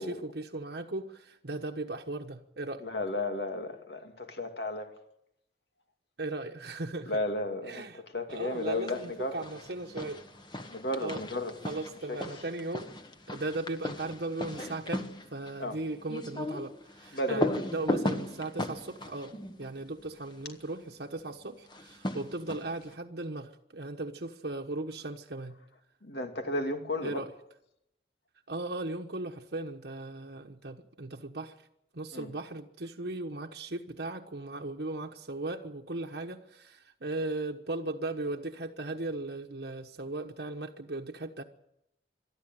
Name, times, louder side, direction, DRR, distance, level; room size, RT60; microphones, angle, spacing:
voice 1, 0.0-2.9 6.2-7.1 7.7-8.0 8.3-10.2 11.0-11.2 11.6-12.9 13.3-25.6 27.0-27.3 28.5-31.5 31.9-41.4, right 2 dB, 70° right, 1.2 m, -37 dB
voice 2, 2.8-4.9 7.1-9.4 10.7-11.7 12.1-12.2 14.6-14.8 15.6-15.8 17.1-17.5 26.0-27.2 32.1-32.3, left 1 dB, 70° left, 2.6 m, -34 dB
sound 1, 8.6-9.1 9.4-20.4 21.7-22.9, left 1 dB, 25° left, 1.4 m, -37 dB
23.0 x 13.0 x 9.3 m
head